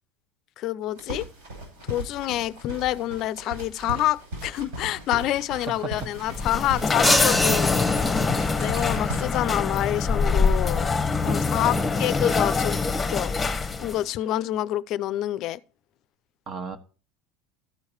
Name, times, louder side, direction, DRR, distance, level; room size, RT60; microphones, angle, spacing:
voice 1, 0.6-1.3 1.8-7.7 8.6-10.9 11.2-12.8 13.1-13.3 13.8-15.6, left 14 dB, 55° left, 0.5 m, -27 dB
sound 1, 0.9-9.4, right 1 dB, 80° right, 5.4 m, -38 dB
voice 2, 5.5-5.9 11.2-12.1 16.5-16.8, right 4 dB, 40° right, 1.4 m, -36 dB
sound 2, 6.2-14.0, left 4 dB, 20° left, 1.0 m, -24 dB
sound 3, 7.0-8.8, equal, 5° right, 0.7 m, -25 dB
13.5 x 4.7 x 4.5 m
supercardioid pair, 100°, 0 cm